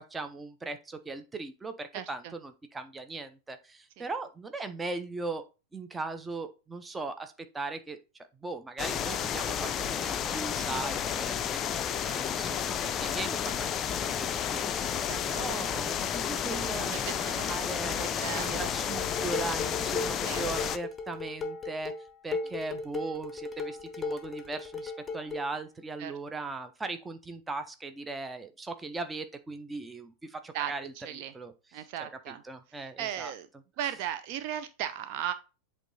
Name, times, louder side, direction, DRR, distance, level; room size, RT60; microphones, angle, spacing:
voice 1, 0.1-5.5 5.7-8.0 8.4-18.0 18.3-33.3, right 3 dB, 10° right, 8 dB, 0.7 m, -39 dB
sound 1, 8.8-20.8, left 8 dB, 30° left, 0.5 m, -31 dB
voice 2, 16.9-17.5 18.0-18.6 20.3-20.4 26.0-26.1 30.5-30.7 31.0-31.3 31.7-32.4 33.0-33.5 33.8-35.3, right 10 dB, 45° right, 10 dB, 0.6 m, -36 dB
Dishes pots and pans, 18.9-25.5, left 3 dB, 10° left, 1.0 m, -37 dB
8.1 x 3.7 x 4.0 m, 0.30 s
figure-of-eight pair, 90°, 0 cm